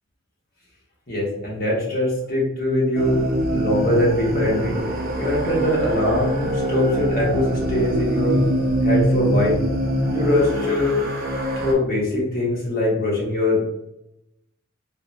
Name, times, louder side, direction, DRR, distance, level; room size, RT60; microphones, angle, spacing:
voice 1, 1.1-3.2 3.5-4.7 5.2-8.4 8.8-9.6 10.1-11.0 11.6-13.6, left 1 dB, 45° left, -4 dB, 1.2 m, -22 dB
sound 1, 2.9-11.7, right 1 dB, 45° right, 0.5 m, -23 dB
3.7 x 2.1 x 2.6 m, 0.82 s
head